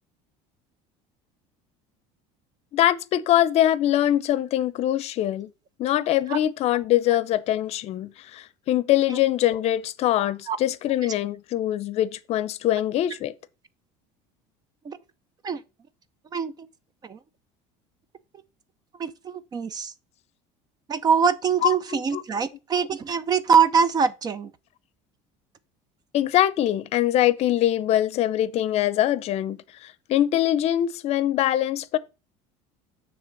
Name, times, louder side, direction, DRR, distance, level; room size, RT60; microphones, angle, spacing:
voice 1, 2.7-5.5 5.8-13.3 21.6-22.2 26.1-32.0, left 12 dB, 50° left, 0.7 m, -23 dB
voice 2, 19.0-19.9 20.9-24.5, right 6 dB, 30° right, 0.6 m, -23 dB
9.7 x 3.3 x 5.2 m
cardioid pair, 140°, 14 cm